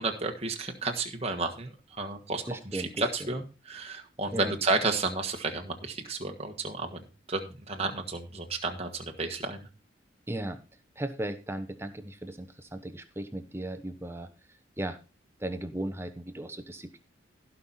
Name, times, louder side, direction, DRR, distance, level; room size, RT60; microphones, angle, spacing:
voice 1, 0.0-9.7, right 3 dB, 30° right, 4 dB, 1.5 m, -32 dB
voice 2, 2.5-3.1 4.3-4.5 10.3-10.6 11.0-14.3 14.8-15.0 15.4-17.0, right 1 dB, 10° right, 8 dB, 1.0 m, -36 dB
17.0 x 5.7 x 4.2 m, 0.30 s
head